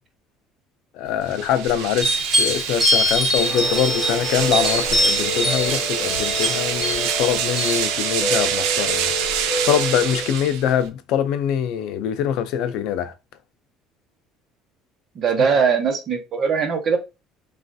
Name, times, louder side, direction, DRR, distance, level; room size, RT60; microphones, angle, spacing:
voice 1, 1.0-2.1 2.4-9.2 9.6-13.1, left 9 dB, 70° left, 0.4 m, -23 dB
sound 1, 1.2-10.9, right 9 dB, 85° right, 0.4 m, -26 dB
sound 2, 2.0-7.8, equal, 5° right, 0.9 m, -23 dB
sound 3, 3.4-10.2, equal, 30° left, 1.3 m, -29 dB
voice 2, 15.1-17.0, right 6 dB, 40° right, 0.8 m, -20 dB
3.1 x 2.4 x 2.6 m
cardioid pair, 150°, 0 cm